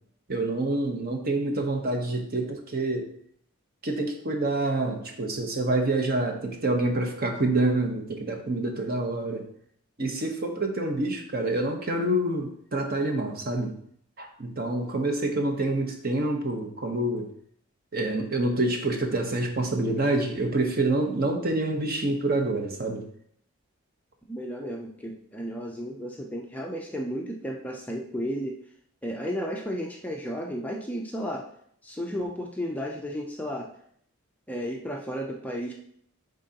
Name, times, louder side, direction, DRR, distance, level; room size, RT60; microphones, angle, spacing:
voice 1, 0.3-3.1 3.8-9.4 10.0-13.7 14.2-17.3 17.9-23.0, right 2 dB, 45° right, 3 dB, 0.9 m, -27 dB
voice 2, 24.3-28.6 29.0-31.5 31.8-33.7 34.5-35.7, equal, 5° left, 0 dB, 0.4 m, -33 dB
8.8 x 3.8 x 2.8 m, 0.66 s
head